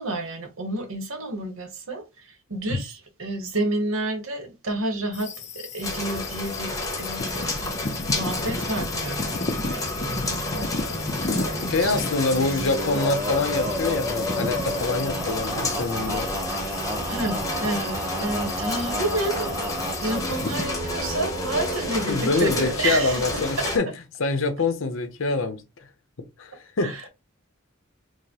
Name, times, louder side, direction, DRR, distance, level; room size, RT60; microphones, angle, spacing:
voice 1, 0.0-13.0 17.1-23.8 26.8-27.1, right 2 dB, 85° right, 1.0 m, -30 dB
sound 1, 5.1-20.7, left 3 dB, 35° left, 0.5 m, -34 dB
sound 2, 5.8-23.8, left 2 dB, 15° left, 0.8 m, -31 dB
voice 2, 11.7-16.3 22.1-23.9 24.2-25.6 26.4-27.1, left 3 dB, 70° left, 0.7 m, -25 dB
Male singing, 12.3-22.1, equal, 15° right, 0.6 m, -31 dB
4.8 x 2.1 x 2.8 m
head